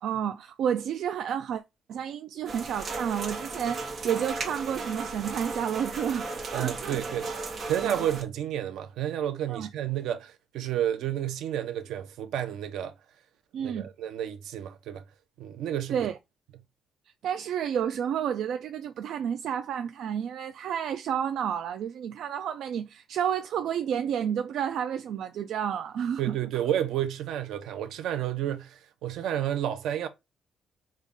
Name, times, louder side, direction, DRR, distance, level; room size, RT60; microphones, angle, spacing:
voice 1, 0.0-1.6 1.9-7.0 7.8-8.0 9.5-9.7 13.5-13.9 15.9-16.2 17.2-26.3, right 8 dB, 60° right, 0.4 m, -30 dB
sound 1, 2.5-8.2, right 3 dB, 35° right, 1.0 m, -35 dB
voice 2, 6.5-7.3 7.7-12.9 13.6-15.0 15.4-16.1 26.2-30.1, right 11 dB, 80° right, 0.7 m, -31 dB
5.3 x 2.4 x 3.6 m
cardioid pair, 170°, 0 cm